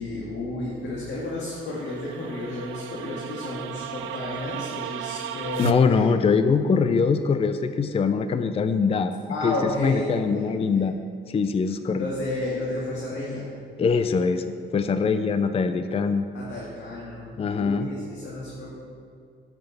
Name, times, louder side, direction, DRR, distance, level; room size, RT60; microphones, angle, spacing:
voice 1, 0.0-6.1 9.3-10.9 12.0-13.5 16.3-17.3 17.6-18.7, left 1 dB, 65° left, -5 dB, 1.8 m, -32 dB
sound 1, 1.3-5.7, right 11 dB, 85° right, 0.5 m, -35 dB
voice 2, 5.6-9.1 9.4-9.5 9.8-11.0 11.3-12.1 13.8-14.4 14.7-16.3 17.4-17.9, left 5 dB, 30° left, 10 dB, 0.4 m, -22 dB
8.8 x 5.9 x 6.9 m, 2.3 s
cardioid pair, 90°, 20 cm